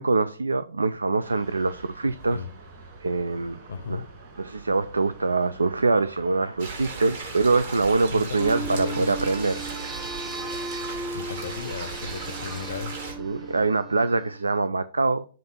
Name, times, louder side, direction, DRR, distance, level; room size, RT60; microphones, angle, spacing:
voice 1, 0.0-2.4 3.0-3.6 3.9-4.0 4.4-9.6 13.2-15.2, right 3 dB, 85° right, 0.3 m, -24 dB
sound 1, 1.2-13.7, right 3 dB, 35° right, 2.7 m, -46 dB
voice 2, 3.7-4.0 8.1-8.2 8.5-9.3 11.1-13.1, left 6 dB, 65° left, 0.6 m, -35 dB
sound 2, 6.6-13.1, right 4 dB, 55° right, 2.5 m, -36 dB
sound 3, 8.4-14.4, right 3 dB, 10° right, 0.5 m, -37 dB
7.6 x 2.6 x 5.7 m
figure-of-eight pair, 120°, 0 cm